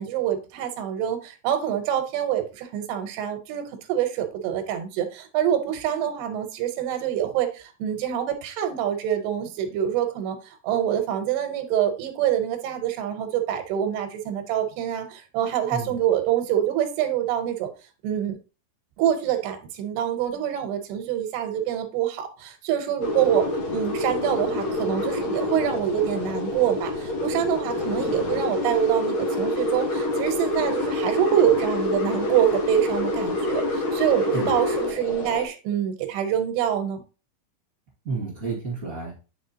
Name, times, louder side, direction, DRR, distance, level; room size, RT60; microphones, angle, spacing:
voice 1, 0.0-3.6 3.9-10.4 10.6-17.7 18.0-18.4 19.0-23.5 23.7-37.0, right 10 dB, 85° right, 2.9 m, -25 dB
sound 1, 23.0-35.5, left 2 dB, 90° left, 1.1 m, -27 dB
voice 2, 38.0-39.2, right 4 dB, 40° right, 1.2 m, -31 dB
9.4 x 4.3 x 2.8 m
omnidirectional pair, 4.7 m